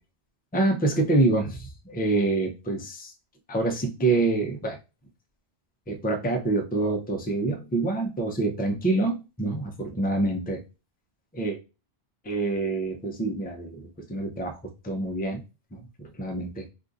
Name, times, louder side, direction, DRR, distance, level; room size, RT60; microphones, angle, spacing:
voice 1, 0.5-3.1 3.5-4.8 5.9-10.6 11.3-11.6 12.2-14.6 14.8-15.4 15.7-16.7, right 2 dB, 15° left, 3 dB, 0.4 m, -26 dB
2.6 x 2.4 x 3.7 m, 0.29 s
omnidirectional pair, 1.1 m